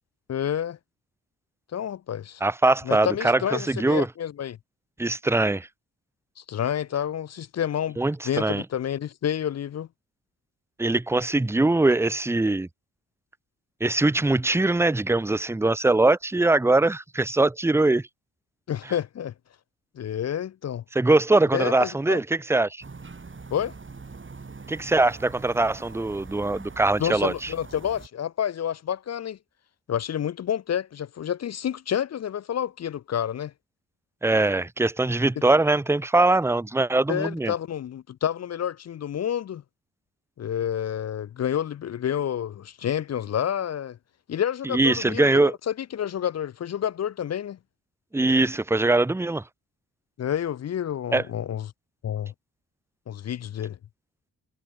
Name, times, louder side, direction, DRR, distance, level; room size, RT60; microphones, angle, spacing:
voice 1, 0.3-0.8 1.7-2.4 2.9-4.6 6.5-8.0 8.2-9.9 18.7-19.3 20.0-20.8 21.5-22.2 23.5-23.7 27.0-29.4 29.9-33.5 37.1-39.6 40.4-44.0 44.3-47.6 50.2-51.7 52.0-52.3 53.1-53.8, left 9 dB, 40° left, 0.5 m, -29 dB
voice 2, 2.4-4.1 5.0-5.7 8.0-8.6 10.8-12.7 13.8-18.0 20.9-22.8 24.7-27.5 34.2-37.5 44.6-45.5 48.1-49.4 51.1-51.2, right 2 dB, 5° right, 0.6 m, -22 dB
sound 1, 22.8-28.1, right 4 dB, 30° right, 1.8 m, -43 dB
hypercardioid pair, 40°, 40 cm